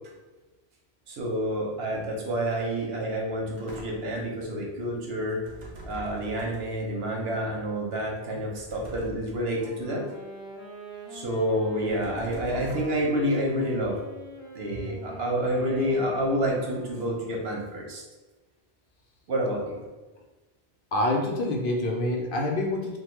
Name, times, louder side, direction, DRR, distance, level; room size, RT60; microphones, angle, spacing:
voice 1, 1.1-5.4 5.8-10.0 11.1-14.0 14.5-18.0 19.3-19.8, equal, 80° right, -1 dB, 1.0 m, -28 dB
sound 1, 3.6-4.3 5.4-6.9 8.5-9.5 11.9-13.3, right 1 dB, 55° right, 0.6 m, -43 dB
Wind instrument woodwind instrument, 9.5-17.4, equal, 90° left, 1.1 m, -44 dB
voice 2, 20.9-23.0, left 1 dB, 65° left, 1 dB, 0.7 m, -26 dB
3.0 x 2.2 x 3.0 m, 1.2 s
omnidirectional pair, 1.0 m